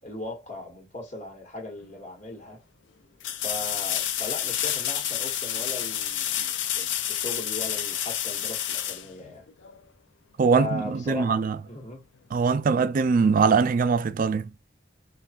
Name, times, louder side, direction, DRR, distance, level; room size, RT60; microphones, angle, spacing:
voice 1, 0.0-2.6 3.4-9.5 10.5-12.0, left 2 dB, 40° left, 1.1 m, -38 dB
sound 1, 1.8-1.9 3.2-9.8 12.7-12.8, left 10 dB, 70° left, 0.4 m, -29 dB
voice 2, 10.4-11.6 12.3-14.5, right 5 dB, 45° right, 0.3 m, -22 dB
3.2 x 2.2 x 2.4 m
head